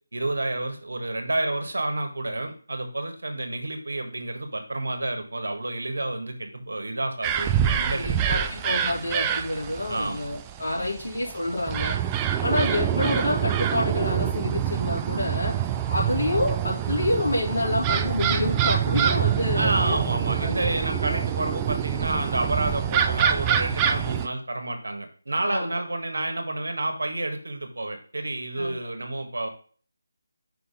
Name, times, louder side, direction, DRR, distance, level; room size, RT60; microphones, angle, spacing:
voice 1, 0.1-8.6 9.9-10.3 10.8-11.0 19.5-29.5, right 2 dB, 80° right, 5 dB, 1.5 m, -30 dB
sound 1, 7.2-24.3, right 10 dB, 15° right, 0.4 m, -26 dB
voice 2, 7.8-20.0 20.4-20.8 21.1-21.3 25.4-25.7 28.5-28.8, left 1 dB, 75° left, -3 dB, 3.3 m, -28 dB
5.7 x 4.1 x 5.2 m, 0.42 s
figure-of-eight pair, 160°, 0 cm